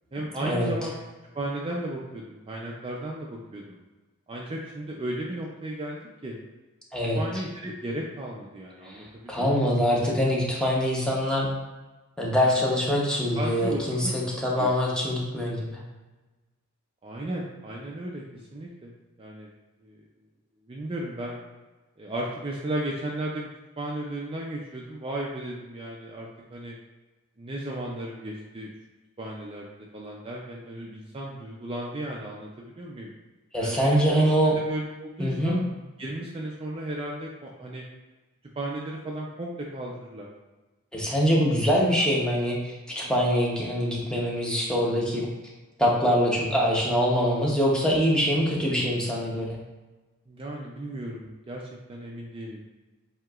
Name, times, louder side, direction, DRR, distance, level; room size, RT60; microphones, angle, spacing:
voice 1, 0.1-1.0 1.3-3.8 4.3-6.4 7.2-9.7 12.4-12.6 13.3-14.7 17.0-18.2 18.5-18.9 19.2-19.5 19.8-20.0 20.7-21.4 22.0-23.5 23.8-26.8 27.4-28.7 29.2-33.1 33.6-35.6 36.0-37.8 38.6-40.3 50.3-51.6 51.9-52.7, right 1 dB, 25° right, -3 dB, 0.5 m, -35 dB
voice 2, 9.3-11.5 12.2-15.8 33.5-34.5 35.2-35.6 40.9-45.3 45.8-49.6, equal, 5° left, -4 dB, 0.9 m, -24 dB
7.4 x 2.8 x 2.4 m, 1.2 s
head